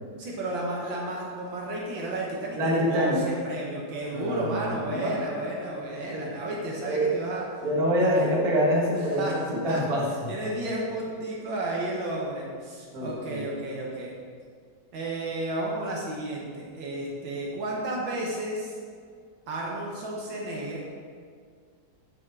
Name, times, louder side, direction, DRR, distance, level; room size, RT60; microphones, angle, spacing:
voice 1, 0.2-7.5 8.0-8.3 8.9-9.4 9.7-9.8 10.3-14.1 14.9-18.8 19.5-20.9, right 1 dB, 80° right, -3 dB, 1.9 m, -32 dB
voice 2, 2.6-3.2 4.1-4.6 4.9-5.2 5.7-5.8 6.1-6.3 6.9-7.1 7.6-10.3 12.9-13.4, equal, 55° right, -3 dB, 2.0 m, -25 dB
7.3 x 5.7 x 6.1 m, 2.1 s
omnidirectional pair, 2.1 m